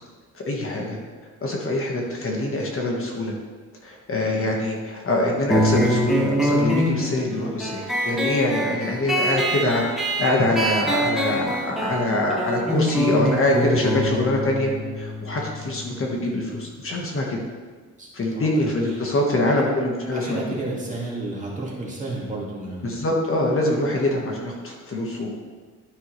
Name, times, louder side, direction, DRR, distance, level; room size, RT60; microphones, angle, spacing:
voice 1, 0.4-1.0 1.4-3.3 3.8-9.8 10.2-14.7 15.0-17.4 18.1-20.4 22.8-25.3, left 1 dB, 45° left, -1 dB, 1.5 m, -24 dB
sound 1, 5.5-16.6, equal, ahead, 1.5 m, -25 dB
voice 2, 18.0-18.6 19.0-19.1 19.3-19.7 20.1-23.0, right 2 dB, 25° right, -4 dB, 2.1 m, -32 dB
12.5 x 5.6 x 3.2 m, 1.4 s
cardioid pair, 120°, 31 cm